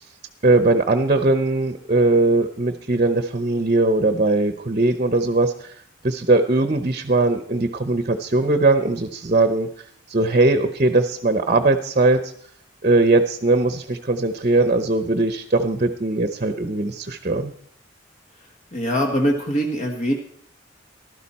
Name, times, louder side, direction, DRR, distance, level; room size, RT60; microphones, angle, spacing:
voice 1, 0.4-5.7 6.0-9.7 10.1-12.3 12.8-17.5, right 2 dB, 40° right, 9 dB, 0.8 m, -20 dB
voice 2, 18.7-20.1, equal, 40° left, 2 dB, 1.3 m, -22 dB
15.0 x 12.0 x 4.2 m, 0.63 s
head